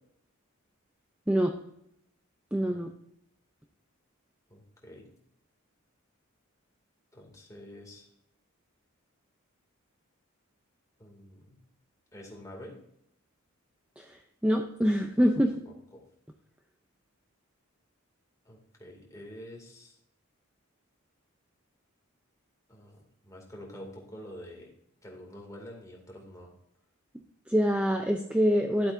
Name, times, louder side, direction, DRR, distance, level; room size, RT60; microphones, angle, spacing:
voice 1, 2.5-2.9 14.0-15.5 27.5-28.9, equal, 5° right, 3 dB, 0.5 m, -25 dB
voice 2, 4.5-5.1 7.1-8.1 11.0-11.6 12.1-12.8 15.6-16.0 18.4-20.0 22.7-24.7 25.0-26.5, equal, 15° left, -1 dB, 2.4 m, -47 dB
12.0 x 8.1 x 2.7 m, 0.73 s
head